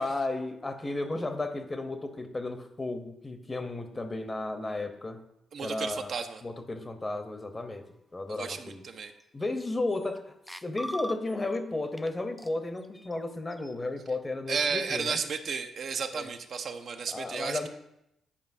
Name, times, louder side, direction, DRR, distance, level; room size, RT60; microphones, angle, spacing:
voice 1, 0.0-5.2 5.6-6.1 6.4-7.9 8.1-8.8 9.3-10.3 10.6-15.2 16.1-16.3 17.1-17.7, left 2 dB, 30° left, 8 dB, 0.8 m, -33 dB
voice 2, 5.5-6.4 8.3-9.1 14.5-17.7, right 5 dB, 60° right, 6 dB, 0.5 m, -33 dB
sound 1, 9.2-9.3 9.6-10.2 10.5-11.6 12.0-12.1 12.4-13.7, equal, ahead, 0.3 m, -41 dB
9.9 x 5.1 x 2.7 m, 0.83 s
hypercardioid pair, 45°, 0 cm